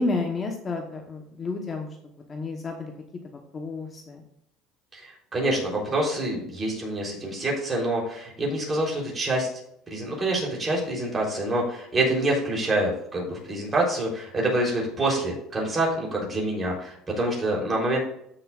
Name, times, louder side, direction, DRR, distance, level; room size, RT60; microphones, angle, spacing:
voice 1, 0.0-1.9 2.3-2.9 3.5-4.2, left 3 dB, 30° left, 3 dB, 1.1 m, -30 dB
voice 2, 4.9-9.5 9.9-18.0, right 1 dB, 20° right, -2 dB, 3.6 m, -26 dB
13.5 x 6.5 x 2.5 m, 0.75 s
cardioid pair, 130°, 0 cm